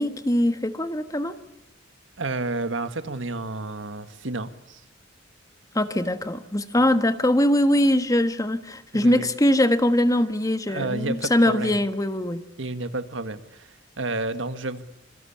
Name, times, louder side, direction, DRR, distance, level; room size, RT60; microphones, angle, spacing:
voice 1, 0.0-1.3 5.7-12.4, left 1 dB, 20° left, 10 dB, 1.4 m, -22 dB
voice 2, 2.2-4.8 8.9-9.2 10.7-11.8 12.6-14.8, right 2 dB, 80° right, 10 dB, 1.7 m, -31 dB
26.5 x 23.5 x 8.6 m, 0.77 s
head